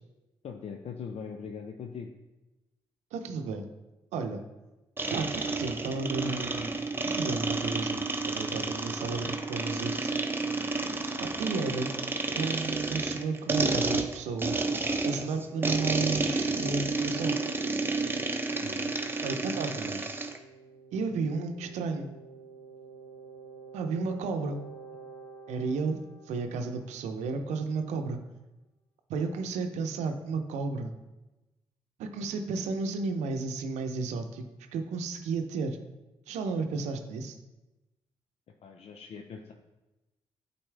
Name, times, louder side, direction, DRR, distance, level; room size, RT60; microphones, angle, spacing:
voice 1, 0.4-2.1 18.6-18.9 38.6-39.5, left 6 dB, 60° left, 4 dB, 0.6 m, -41 dB
voice 2, 3.1-3.7 4.1-4.4 5.1-10.1 11.2-11.9 12.3-14.7 15.0-17.4 19.2-20.1 20.9-22.1 23.7-24.6 25.5-26.0 26.3-28.2 29.1-30.9 32.0-34.4 34.7-35.8 36.3-37.4, right 4 dB, 80° right, 6 dB, 0.7 m, -33 dB
sound 1, 5.0-20.4, right 3 dB, 20° right, 0.8 m, -31 dB
sound 2, 15.5-27.1, right 3 dB, 90° left, 1.0 m, -49 dB
8.7 x 4.2 x 3.4 m, 1.1 s
supercardioid pair, 45°, 12 cm